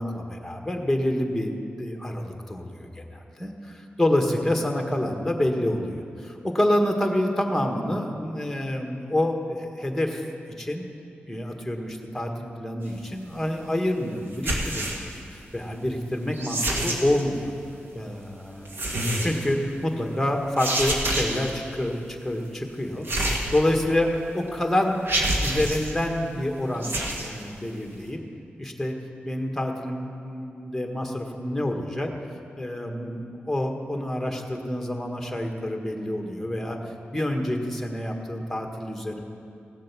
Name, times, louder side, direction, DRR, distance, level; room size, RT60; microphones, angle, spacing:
voice 1, 0.0-1.5 1.8-10.2 10.6-10.9 11.3-17.5 17.9-18.7 19.2-23.1 23.5-25.0 25.4-26.9 27.2-28.2 28.6-28.9 29.2-32.1 32.6-36.8 37.1-39.2, left 1 dB, 5° left, 3 dB, 1.5 m, -27 dB
sound 1, 14.3-15.2 16.3-17.2 18.7-19.5 20.6-21.6 23.1-24.0 24.5-24.6 25.1-25.9 26.7-27.3, right 1 dB, 60° right, 1.7 m, -27 dB
16.5 x 7.4 x 6.1 m, 2.5 s
cardioid pair, 70°, 4 cm